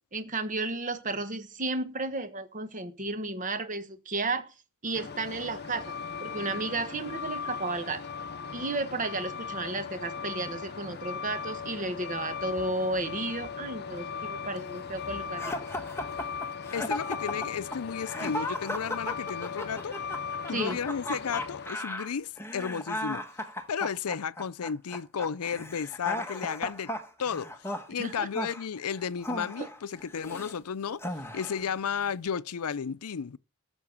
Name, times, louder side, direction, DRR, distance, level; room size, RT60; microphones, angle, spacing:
voice 1, 0.1-4.5 4.8-5.9 6.2-8.0 8.5-15.4 20.5-20.8 28.0-28.3 29.6-29.7, right 2 dB, 35° right, 1.3 m, -33 dB
sound 1, 4.8-14.6, right 3 dB, 55° right, 3.6 m, -55 dB
Truck, 5.0-21.7, left 6 dB, 50° left, 0.8 m, -38 dB
sound 2, 15.4-30.6 31.0-31.7, left 1 dB, 10° left, 1.3 m, -36 dB
voice 2, 16.7-20.0 20.5-23.2 23.7-26.9 27.2-27.5 27.9-33.4, left 7 dB, 90° left, 0.5 m, -33 dB
13.5 x 6.9 x 7.1 m
head